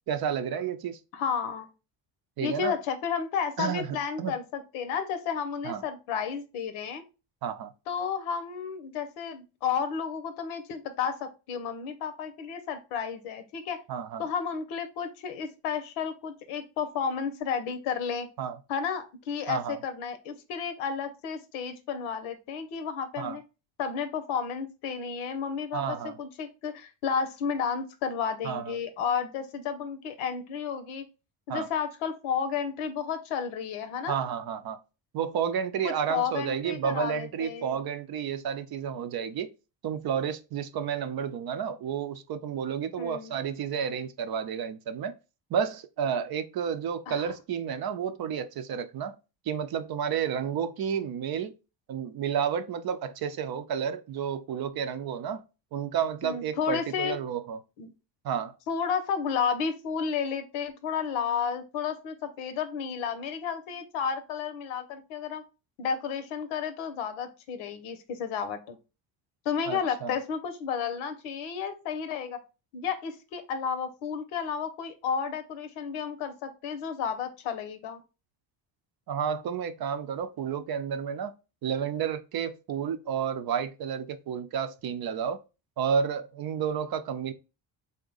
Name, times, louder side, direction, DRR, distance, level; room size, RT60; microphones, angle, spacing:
voice 1, 0.1-1.0 2.4-2.8 3.6-3.9 4.2-4.3 5.6-5.8 7.4-7.7 13.9-14.2 18.4-18.6 19.5-19.8 23.2-23.4 25.7-26.2 28.4-28.8 31.5-31.7 34.1-34.8 35.1-39.5 39.8-45.1 45.5-49.2 49.5-51.5 51.9-55.4 55.7-57.6 58.2-58.5 69.6-70.2 79.1-81.3 81.6-85.4 85.8-87.3, right 7 dB, 50° right, 0.6 m, -31 dB
voice 2, 1.1-1.7 2.4-7.0 7.9-13.8 14.2-18.3 18.7-23.4 23.8-31.0 31.5-34.2 35.8-37.8 43.0-43.3 47.1-47.3 56.2-57.2 57.8-57.9 58.7-65.4 65.8-68.8 69.4-72.4 72.7-78.0, left 6 dB, 90° left, 0.8 m, -32 dB
3.8 x 2.2 x 3.8 m
supercardioid pair, 80°, 48 cm